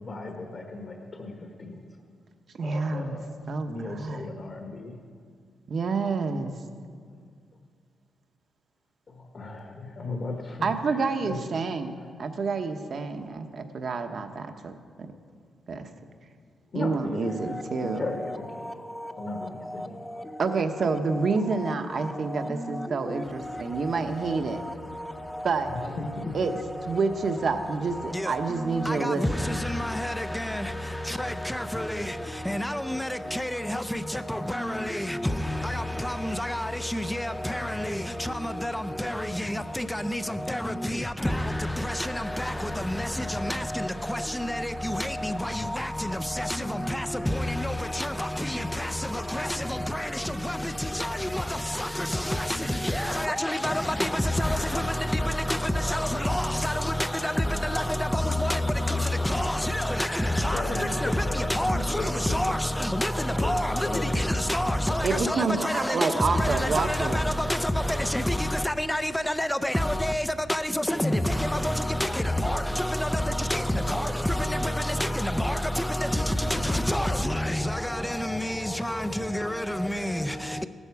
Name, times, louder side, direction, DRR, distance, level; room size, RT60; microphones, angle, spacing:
voice 1, 0.0-1.8 2.6-3.3 3.7-5.0 9.1-11.4 16.7-17.6 17.9-18.7 19.2-20.0 25.7-26.4 60.5-62.6 63.2-64.2, left 2 dB, 40° left, 1.3 m, -36 dB
voice 2, 2.6-3.2 3.5-4.2 5.7-6.5 10.6-11.9 12.2-14.7 15.7-15.9 16.7-18.1 20.4-24.6 25.4-25.7 26.3-26.5 26.8-29.6 65.0-67.2, right 4 dB, 50° right, 1.0 m, -28 dB
voice 3, 17.3-18.0 18.5-20.6 20.9-21.0 21.6-25.5 25.8-27.0 27.6-80.7, left 1 dB, 5° left, 0.5 m, -28 dB
16.5 x 12.5 x 4.8 m
wide cardioid pair, 145°, 0 cm